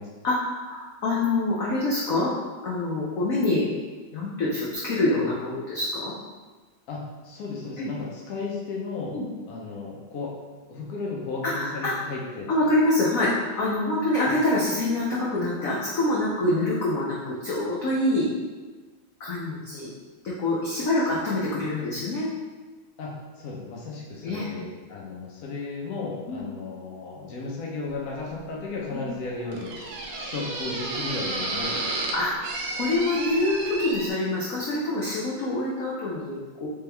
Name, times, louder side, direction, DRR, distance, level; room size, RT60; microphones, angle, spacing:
voice 1, 0.2-2.3 2.6-3.7 4.1-6.1 7.8-7.9 9.1-9.2 11.4-11.9 12.5-18.3 19.2-19.9 20.2-22.3 24.2-24.5 26.3-26.4 28.9-29.1 32.1-32.3 32.8-36.7, left 2 dB, 85° left, -6 dB, 0.7 m, -25 dB
voice 2, 6.9-9.2 9.5-10.3 10.7-12.7 23.0-29.8 30.2-32.0, left 3 dB, 65° left, -3 dB, 0.9 m, -34 dB
sound 1, 27.9-34.1, right 2 dB, 75° right, 1.4 m, -33 dB
3.5 x 3.4 x 3.3 m, 1.3 s
omnidirectional pair, 2.3 m